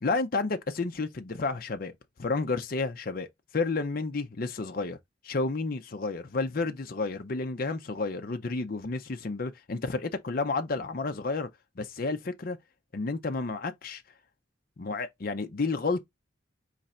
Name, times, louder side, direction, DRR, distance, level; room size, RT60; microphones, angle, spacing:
voice 1, 0.0-3.3 3.5-5.0 5.2-11.5 11.8-12.6 12.9-14.0 14.8-16.0, left 3 dB, 50° left, 0.6 m, -31 dB
3.8 x 3.3 x 4.2 m
head